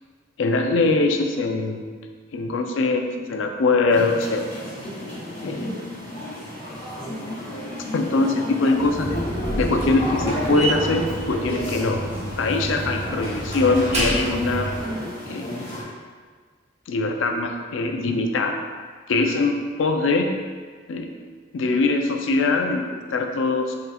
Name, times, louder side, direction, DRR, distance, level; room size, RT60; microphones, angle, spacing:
voice 1, 0.4-1.8 2.3-4.5 5.4-5.8 7.9-9.2 9.6-12.0 12.4-14.7 15.3-15.5 16.9-18.5 19.1-20.4 20.9-21.1 21.5-23.7, left 3 dB, 75° left, 4 dB, 0.4 m, -22 dB
sound 1, 3.9-15.8, equal, 30° left, 1.3 m, -31 dB
Slam, 8.7-14.9, right 1 dB, 35° right, 0.7 m, -29 dB
4.1 x 3.7 x 2.3 m, 1.5 s
head